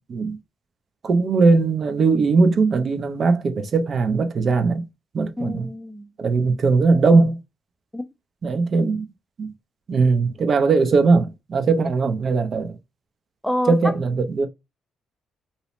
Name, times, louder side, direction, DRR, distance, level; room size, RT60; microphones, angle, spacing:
voice 1, 1.0-4.8 5.1-5.7 6.2-7.4 8.4-9.0 9.4-9.5 9.9-12.8 13.7-14.5, right 4 dB, 50° right, 0.6 m, -19 dB
voice 2, 5.4-6.1 7.9-8.1 13.4-13.9, left 1 dB, 5° left, 0.4 m, -27 dB
2.7 x 2.0 x 2.8 m
cardioid pair, 80°, 0 cm